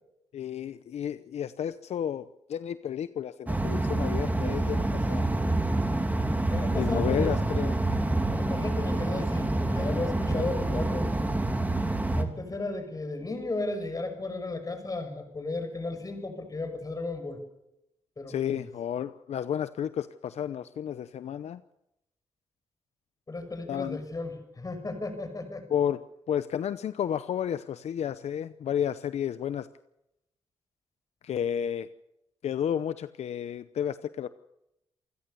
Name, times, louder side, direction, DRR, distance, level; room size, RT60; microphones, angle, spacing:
voice 1, 0.3-5.3 6.7-7.8 18.3-21.6 23.7-24.0 25.7-26.0 26.3-29.7 31.2-31.9 32.4-34.3, left 9 dB, 75° left, 13 dB, 0.7 m, -32 dB
sound 1, 3.5-12.2, right 2 dB, 15° right, 3.0 m, -27 dB
voice 2, 6.5-7.3 8.3-11.1 12.2-17.4 18.2-18.7 23.3-25.6, left 2 dB, 30° left, 7 dB, 6.3 m, -34 dB
28.5 x 15.5 x 7.0 m, 0.85 s
cardioid pair, 80°, 11 cm